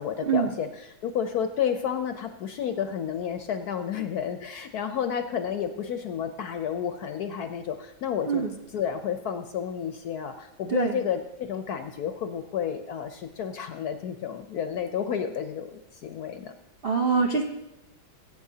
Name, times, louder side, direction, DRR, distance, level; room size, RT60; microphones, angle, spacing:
voice 1, 0.0-8.4 8.7-16.5, left 8 dB, 70° left, 8 dB, 0.9 m, -31 dB
voice 2, 16.8-17.4, right 5 dB, 85° right, 2 dB, 0.5 m, -24 dB
20.0 x 8.5 x 2.8 m, 0.93 s
omnidirectional pair, 2.2 m